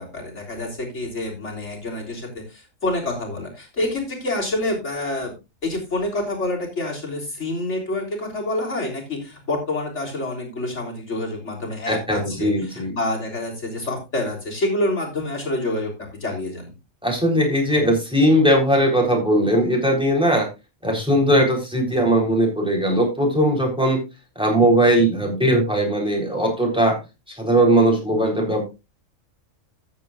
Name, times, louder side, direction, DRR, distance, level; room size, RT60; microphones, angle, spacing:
voice 1, 0.0-5.3 5.6-15.9 16.2-16.7, left 1 dB, 60° left, 0 dB, 3.8 m, -27 dB
voice 2, 11.8-12.9 17.0-20.5 20.8-24.0 24.4-27.0 27.3-28.6, right 1 dB, 5° right, 1 dB, 3.8 m, -19 dB
14.0 x 9.2 x 2.4 m, 0.26 s
omnidirectional pair, 1.4 m